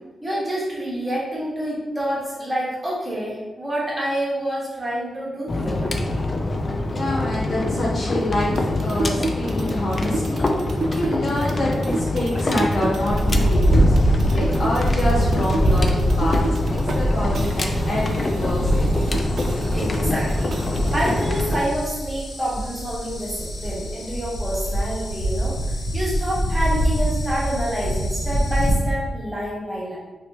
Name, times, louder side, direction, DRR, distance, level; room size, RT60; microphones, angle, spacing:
voice 1, 0.2-5.9 19.7-20.5 20.9-30.0, equal, 15° right, -6 dB, 1.2 m, -27 dB
sound 1, 5.5-21.6, left 2 dB, 30° left, 0.3 m, -25 dB
voice 2, 6.9-14.0 14.3-19.1, left 1 dB, 50° left, -5 dB, 1.1 m, -27 dB
sound 2, 8.4-17.0 17.3-21.1, right 2 dB, 60° right, 0.3 m, -32 dB
sound 3, 13.1-28.7, equal, 90° left, 0.7 m, -23 dB
3.2 x 2.8 x 2.9 m, 1.1 s
wide cardioid pair, 130°, 0 cm